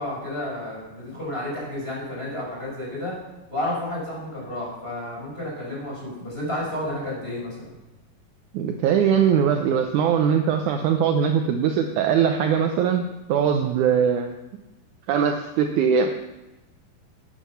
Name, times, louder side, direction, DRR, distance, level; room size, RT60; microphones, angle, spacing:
voice 1, 0.0-3.2 3.5-7.7, left 1 dB, 15° left, -4 dB, 5.4 m, -31 dB
voice 2, 8.5-13.0 13.3-14.3 15.1-16.1, right 7 dB, 75° right, 5 dB, 2.0 m, -21 dB
13.5 x 9.1 x 5.6 m, 1.0 s
omnidirectional pair, 3.9 m